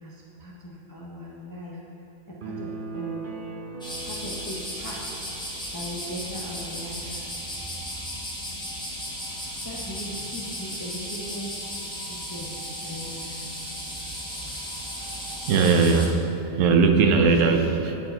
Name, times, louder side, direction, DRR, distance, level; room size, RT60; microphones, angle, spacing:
voice 1, 0.0-1.8 2.3-3.3 4.0-5.2 5.7-7.2 9.6-11.5 12.0-12.5 12.8-13.5, equal, 25° left, -5 dB, 0.5 m, -38 dB
sound 1, 2.4-6.0, right 4 dB, 50° right, 0.6 m, -38 dB
sound 2, 3.8-16.1, equal, 5° left, 0.9 m, -35 dB
voice 2, 15.4-18.0, right 4 dB, 70° right, 5 dB, 0.9 m, -20 dB
8.4 x 4.6 x 4.3 m, 2.9 s
omnidirectional pair, 1.4 m